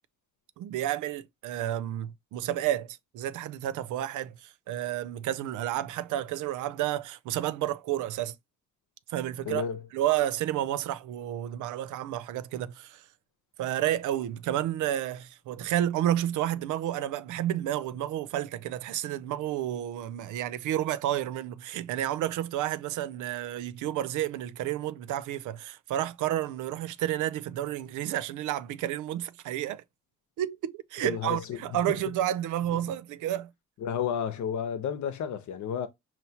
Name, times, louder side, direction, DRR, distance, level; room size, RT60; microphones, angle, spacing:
voice 1, 0.6-8.3 9.1-9.7 9.9-13.0 13.6-29.8 30.4-33.5, right 12 dB, 80° right, 0.5 m, -31 dB
voice 2, 9.4-9.8 31.0-31.6 31.9-32.0 32.7-32.8 33.8-35.9, left 8 dB, 70° left, 0.8 m, -32 dB
5.5 x 2.8 x 2.8 m
cardioid pair, 90°, 30 cm